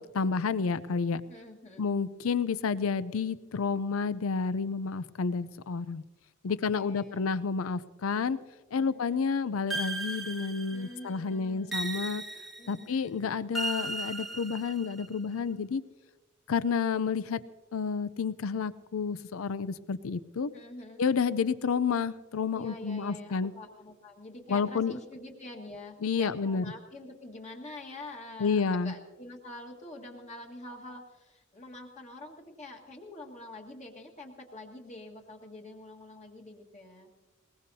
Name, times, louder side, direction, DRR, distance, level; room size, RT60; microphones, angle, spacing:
voice 1, 0.0-1.2 1.8-6.0 6.4-8.4 8.7-12.2 12.7-15.8 16.5-17.4 17.7-20.5 21.0-23.5 24.5-24.9 26.0-26.6 28.4-28.9, left 5 dB, 80° left, 16 dB, 0.5 m, -30 dB
voice 2, 1.3-1.9 6.5-7.3 8.7-9.2 10.7-11.8 12.6-13.0 20.5-21.0 22.5-37.1, left 2 dB, 35° left, 0 dB, 1.7 m, -46 dB
sound 1, 9.7-11.0 11.7-12.8 13.5-15.1, right 2 dB, ahead, 1.1 m, -36 dB
21.0 x 20.0 x 2.8 m, 1.2 s
head